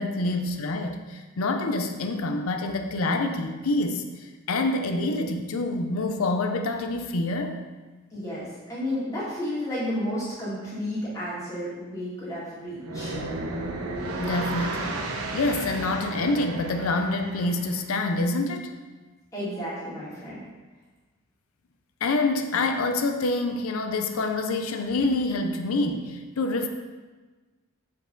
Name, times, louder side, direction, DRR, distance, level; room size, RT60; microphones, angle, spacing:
voice 1, 0.0-7.6 14.2-15.0 15.3-18.7 22.0-26.7, left 2 dB, 80° left, 6 dB, 0.5 m, -27 dB
voice 2, 8.1-13.1 19.3-20.4, equal, 15° left, -11 dB, 2.2 m, -32 dB
sound 1, 12.8-17.9, right 2 dB, 90° right, 0.9 m, -33 dB
7.0 x 4.7 x 3.8 m, 1.3 s
head